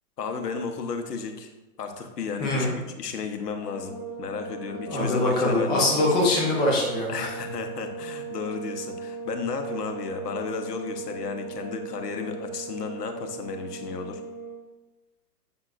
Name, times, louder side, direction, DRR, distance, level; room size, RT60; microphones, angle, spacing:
voice 1, 0.2-1.5 1.8-2.7 3.0-6.0 7.1-14.2, left 5 dB, 75° left, 6 dB, 1.0 m, -33 dB
voice 2, 2.4-2.7 4.9-7.3, left 2 dB, 10° left, -2 dB, 0.6 m, -23 dB
sound 1, 3.6-14.6, right 4 dB, 30° left, 0.9 m, -38 dB
7.8 x 5.7 x 2.5 m, 1.1 s
hypercardioid pair, 135°, 48 cm